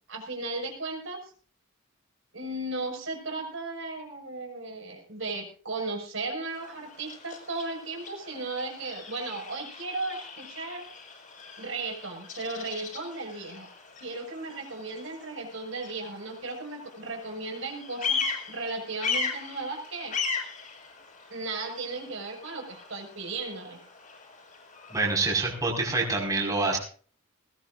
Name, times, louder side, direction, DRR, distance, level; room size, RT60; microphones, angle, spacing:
voice 1, 0.1-1.2 2.3-10.9 11.6-13.7 14.0-20.2 21.3-23.8, right 3 dB, 65° right, 1 dB, 6.0 m, -36 dB
Bird vocalization bird call bird song, 6.5-25.2, left 5 dB, 40° left, 6.4 m, -38 dB
voice 2, 24.9-26.8, right 3 dB, 15° right, -1 dB, 5.4 m, -26 dB
20.0 x 19.5 x 2.6 m, 0.42 s
head